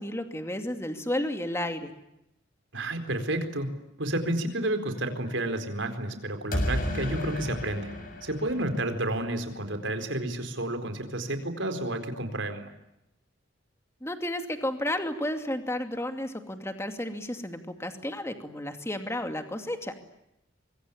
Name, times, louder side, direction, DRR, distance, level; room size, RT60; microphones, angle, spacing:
voice 1, 0.0-1.9 14.0-19.9, left 1 dB, 15° left, 6 dB, 2.5 m, -32 dB
voice 2, 2.7-3.7 4.0-7.9 8.2-12.7, right 1 dB, 75° right, 7 dB, 4.3 m, -31 dB
sound 1, 6.5-9.4, left 1 dB, 45° left, 6.8 m, -33 dB
24.5 x 24.0 x 10.0 m, 0.84 s
head